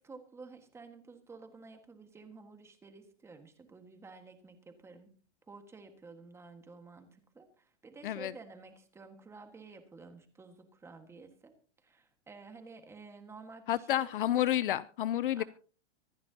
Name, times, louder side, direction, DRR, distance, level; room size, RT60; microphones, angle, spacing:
voice 1, 0.0-5.2 5.5-11.5 11.8-13.9 15.4-15.5, right 4 dB, 5° right, 6 dB, 1.5 m, -52 dB
voice 2, 13.7-15.4, left 12 dB, 50° left, 18 dB, 0.5 m, -30 dB
25.0 x 11.5 x 2.8 m, 0.40 s
supercardioid pair, 165°, 35 cm